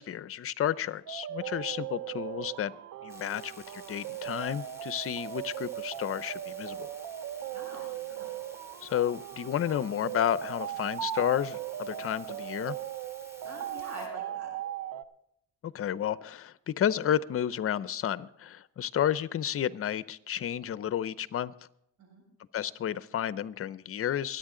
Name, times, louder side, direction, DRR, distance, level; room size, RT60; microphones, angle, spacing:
voice 1, 0.0-2.7 3.0-6.9 8.8-12.8 15.6-21.5 22.5-24.4, left 10 dB, 50° left, 16 dB, 0.6 m, -31 dB
sound 1, 1.1-15.0, right 12 dB, 85° right, 0.7 m, -38 dB
sound 2, 3.1-14.1, left 1 dB, 10° right, 3.7 m, -54 dB
voice 2, 7.5-8.3 13.4-14.5 22.0-22.2, right 2 dB, 65° right, 0 dB, 7.1 m, -45 dB
23.5 x 9.0 x 3.8 m, 0.75 s
cardioid pair, 90°, 30 cm